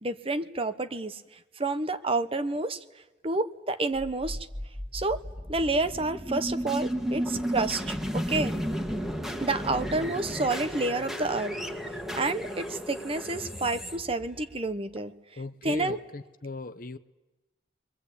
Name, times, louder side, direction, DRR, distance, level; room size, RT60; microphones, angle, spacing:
voice 1, 0.0-1.2 1.6-2.8 3.2-4.4 4.9-5.2 5.5-8.5 9.4-11.6 12.1-15.1 15.6-16.0, right 2 dB, 35° right, 1.0 m, -29 dB
sound 1, 4.0-15.0, equal, ahead, 1.8 m, -34 dB
voice 2, 15.3-17.0, left 2 dB, 55° left, 0.8 m, -38 dB
30.0 x 22.5 x 8.4 m
head